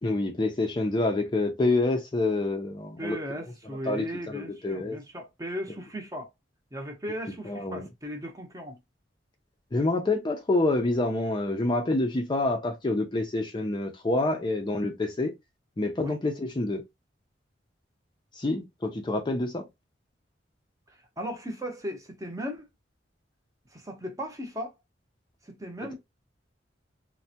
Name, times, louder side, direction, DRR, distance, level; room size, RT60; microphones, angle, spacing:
voice 1, 0.0-3.2 3.8-5.0 7.5-7.9 9.7-15.3 15.8-16.8 18.3-19.7, left 2 dB, 25° left, 0.5 m, -27 dB
voice 2, 3.0-6.3 6.7-8.8 16.0-16.2 20.9-22.7 23.7-24.7 25.4-25.9, equal, 20° right, 0.7 m, -37 dB
3.2 x 2.1 x 2.7 m
head